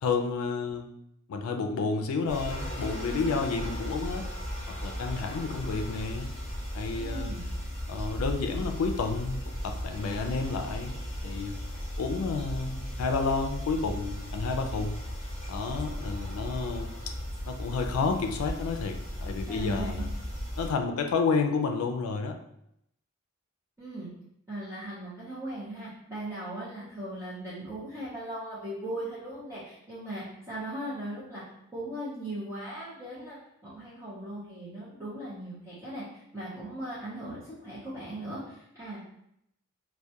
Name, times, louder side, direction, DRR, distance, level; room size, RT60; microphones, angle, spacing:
voice 1, 0.0-0.9 1.3-4.3 4.7-6.3 6.7-7.4 7.9-11.6 12.0-15.0 15.5-16.9 17.5-20.1 20.6-22.4, left 4 dB, 90° left, 5 dB, 0.3 m, -30 dB
sound 1, 2.3-20.7, equal, 35° left, 0.9 m, -36 dB
voice 2, 7.0-7.5 19.5-20.1 23.8-24.1 24.5-31.4 31.7-39.0, right 1 dB, 15° right, -12 dB, 0.6 m, -38 dB
2.2 x 2.1 x 2.7 m, 0.77 s
head